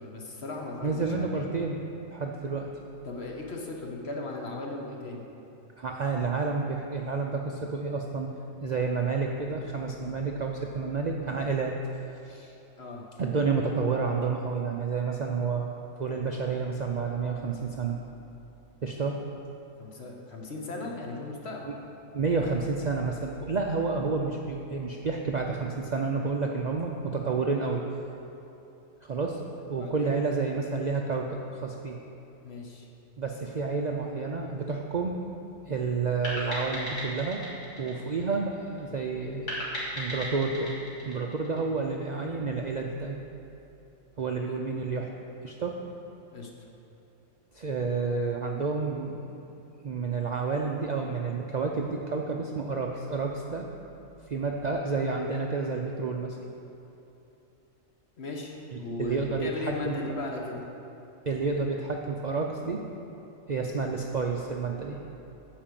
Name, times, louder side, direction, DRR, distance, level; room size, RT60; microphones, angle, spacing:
voice 1, 0.0-1.5 3.0-5.2 12.8-13.1 19.8-21.7 29.8-30.2 32.4-32.9 46.3-46.5 58.2-60.6, left 2 dB, 55° left, 0 dB, 1.3 m, -37 dB
voice 2, 0.8-1.8 2.1-2.7 5.8-8.3 8.6-11.7 12.1-12.5 13.2-15.7 16.0-18.0 18.8-19.2 21.6-21.7 22.1-27.8 29.0-29.4 29.7-32.0 33.2-35.2 35.7-37.4 37.8-39.5 40.0-40.7 41.1-43.3 44.2-45.1 45.4-45.8 47.5-49.2 49.8-53.7 54.3-56.4 58.7-59.9 61.3-62.8 63.5-65.0, right 4 dB, 55° right, 1 dB, 0.5 m, -30 dB
sound 1, 36.2-38.8 39.5-42.0, equal, 75° left, 2.3 m, -36 dB
8.9 x 5.1 x 7.5 m, 2.9 s
omnidirectional pair, 1.3 m